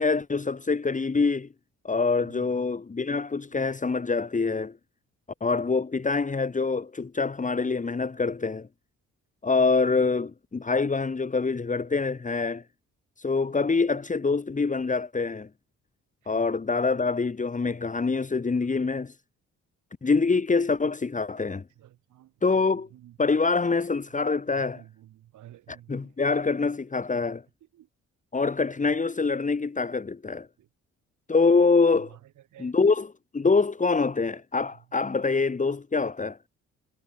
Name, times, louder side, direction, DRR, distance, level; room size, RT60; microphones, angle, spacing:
voice 1, 0.0-1.5 1.8-4.7 5.4-8.7 9.4-12.6 13.2-15.5 16.3-19.1 20.0-21.6 22.4-22.9 23.2-24.8 25.7-27.4 28.3-30.5 31.3-32.1 32.6-36.4, left 4 dB, 25° left, 2.4 m, -25 dB
voice 2, 2.2-2.5 16.2-16.4 21.8-22.3 22.7-23.1 24.8-26.1 27.7-27.9 32.1-32.2 32.5-32.7, right 13 dB, 80° right, 4.7 m, -51 dB
cardioid pair, 90°, 30 cm